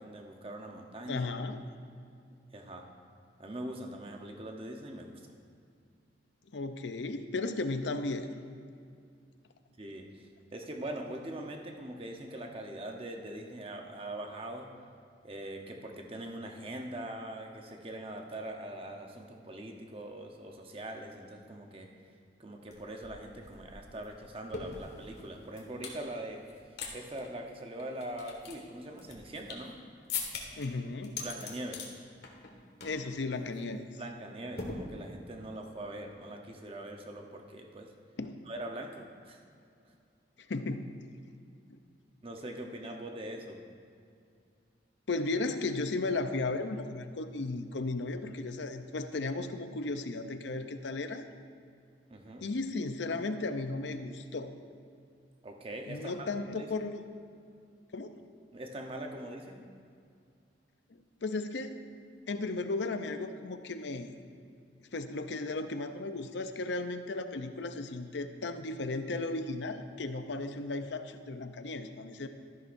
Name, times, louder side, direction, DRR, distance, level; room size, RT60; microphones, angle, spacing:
voice 1, 0.0-1.3 2.5-2.9 3.4-5.4 9.8-14.7 15.2-21.9 22.4-26.4 26.9-29.8 31.2-31.9 34.0-37.9 38.5-39.4 42.2-43.6 52.1-52.4 55.4-56.3 56.6-56.7 58.5-59.6, right 1 dB, 30° right, 2 dB, 0.9 m, -42 dB
voice 2, 1.1-1.6 6.5-8.3 30.6-31.2 32.8-33.8 38.2-38.4 40.5-40.9 41.7-41.8 45.1-51.2 52.4-54.5 55.9-57.0 57.9-58.2 61.2-61.8 62.3-64.1 64.9-72.3, left 3 dB, 85° left, 8 dB, 0.6 m, -35 dB
sound 1, 22.7-22.8 23.0-26.0 26.4-26.9 27.2-27.3 27.8-29.7 30.1-30.7 31.0-31.9 32.2-32.5 32.8-33.1 33.4-33.6 34.6-35.3, left 5 dB, 70° left, 1.6 m, -41 dB
13.0 x 11.0 x 2.6 m, 2.4 s
head